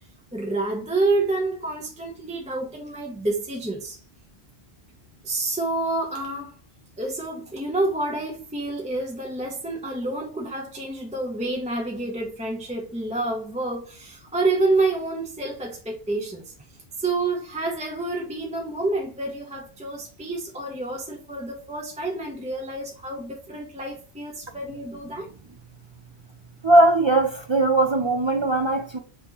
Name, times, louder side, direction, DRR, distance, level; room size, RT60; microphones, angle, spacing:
voice 1, 0.3-4.0 5.2-6.6 7.0-16.5 17.0-25.3, right 2 dB, 5° right, 0.7 m, -28 dB
voice 2, 26.6-29.0, right 2 dB, 45° right, 0.3 m, -19 dB
5.9 x 2.9 x 2.9 m
omnidirectional pair, 1.1 m